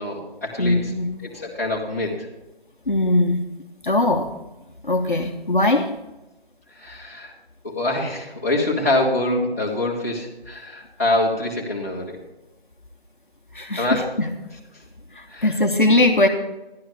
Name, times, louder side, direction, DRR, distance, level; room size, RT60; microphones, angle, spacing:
voice 1, 0.0-0.9 1.2-2.3 6.7-7.3 7.6-12.2 13.8-14.1 15.3-15.5, left 1 dB, 15° left, -8 dB, 1.6 m, -25 dB
voice 2, 0.6-1.2 2.9-3.5 3.8-4.3 4.8-5.9 13.5-14.3 15.1-16.3, left 2 dB, 55° left, 3 dB, 1.1 m, -20 dB
12.5 x 11.5 x 3.5 m, 1.0 s
figure-of-eight pair, 175°, 31 cm